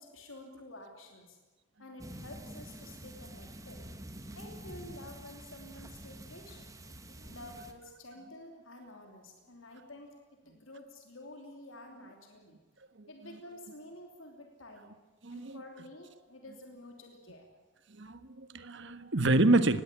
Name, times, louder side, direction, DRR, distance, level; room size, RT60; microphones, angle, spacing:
voice 1, 0.0-1.4 1.8-3.8 4.3-6.7 7.3-10.1 10.4-12.6 13.1-14.9 15.3-17.5, left 1 dB, 85° left, 3 dB, 3.1 m, -50 dB
sound 1, 2.0-7.7, right 1 dB, 15° right, 1.6 m, -47 dB
voice 2, 15.2-15.6 17.9-19.8, right 2 dB, 65° right, 12 dB, 1.4 m, -27 dB
20.5 x 16.0 x 9.9 m, 1.3 s
head